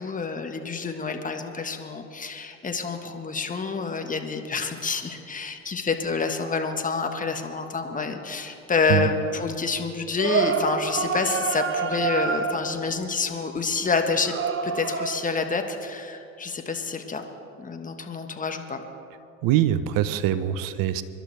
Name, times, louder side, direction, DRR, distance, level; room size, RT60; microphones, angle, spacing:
voice 1, 0.0-14.3 14.6-17.2 17.6-18.8, left 4 dB, 20° left, 5 dB, 1.5 m, -28 dB
sound 1, 10.2-12.9 14.2-15.3, right 6 dB, 30° right, 1.1 m, -27 dB
voice 2, 19.4-21.0, right 12 dB, 55° right, 14 dB, 0.9 m, -23 dB
24.5 x 12.0 x 3.4 m, 2.7 s
hypercardioid pair, 75°, 41 cm